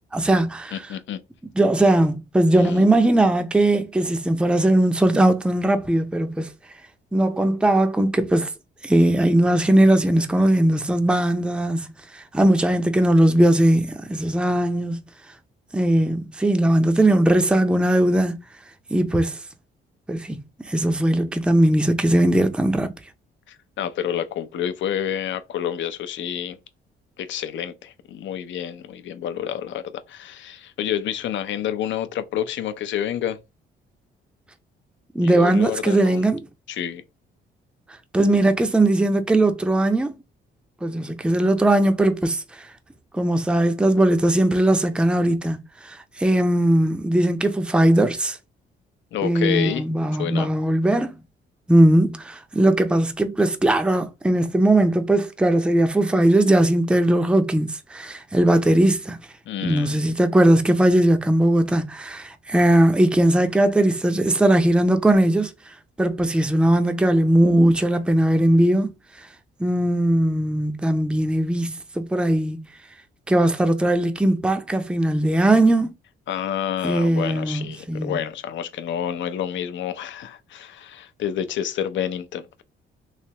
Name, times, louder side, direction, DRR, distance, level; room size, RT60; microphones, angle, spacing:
voice 1, 0.1-0.8 1.6-6.5 7.1-8.5 8.8-11.9 12.1-15.0 15.7-18.3 18.9-19.4 20.1-20.4 20.7-22.9 35.1-36.4 38.1-40.2 40.8-42.7 43.1-45.6 45.8-48.4 49.2-51.2 51.7-59.2 59.6-65.5 66.0-68.9 69.6-72.7 73.3-75.9 76.8-78.2, right 1 dB, 5° right, 0.5 m, -19 dB
voice 2, 0.7-1.2 2.6-2.7 23.5-26.6 27.2-33.4 35.2-36.3 36.7-37.0 49.1-49.9 50.2-50.5 59.5-60.0 76.3-82.6, left 9 dB, 70° left, 0.6 m, -29 dB
3.2 x 2.9 x 2.8 m
cardioid pair, 90°, 20 cm